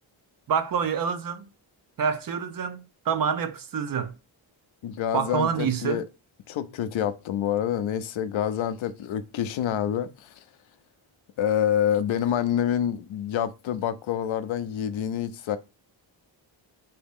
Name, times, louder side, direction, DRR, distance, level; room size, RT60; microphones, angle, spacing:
voice 1, 0.5-1.4 2.0-4.2 5.1-6.0, right 7 dB, 50° right, 0.5 m, -27 dB
voice 2, 4.8-6.0 6.5-10.4 11.4-15.6, left 10 dB, 75° left, 0.6 m, -27 dB
4.0 x 2.8 x 3.5 m
wide cardioid pair, 140°, 47 cm